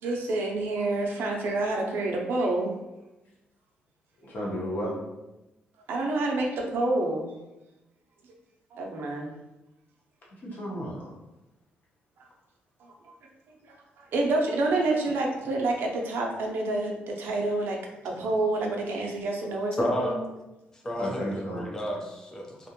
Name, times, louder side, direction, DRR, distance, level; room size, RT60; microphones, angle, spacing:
voice 1, 0.0-2.7 5.9-7.3 8.7-9.3 12.8-12.9 13.7-13.8 14.1-20.1, right 2 dB, 75° right, 0 dB, 0.5 m, -28 dB
voice 2, 4.2-4.9 10.4-11.1 21.0-21.7, equal, 50° left, -5 dB, 0.9 m, -33 dB
voice 3, 19.8-20.2 20.7-22.7, equal, 15° left, -1 dB, 0.5 m, -31 dB
2.5 x 2.1 x 2.8 m, 0.97 s
cardioid pair, 130°, 4 cm